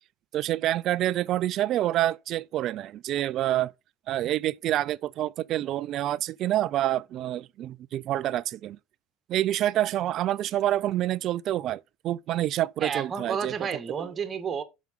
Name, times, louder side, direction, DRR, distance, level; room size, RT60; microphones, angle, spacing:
voice 1, 0.3-3.7 4.1-8.8 9.3-13.5 14.0-14.1, right 13 dB, 50° right, 0.5 m, -27 dB
voice 2, 12.8-14.6, right 6 dB, 30° right, 2.0 m, -31 dB
6.9 x 6.3 x 5.5 m
supercardioid pair, 100°, 0 cm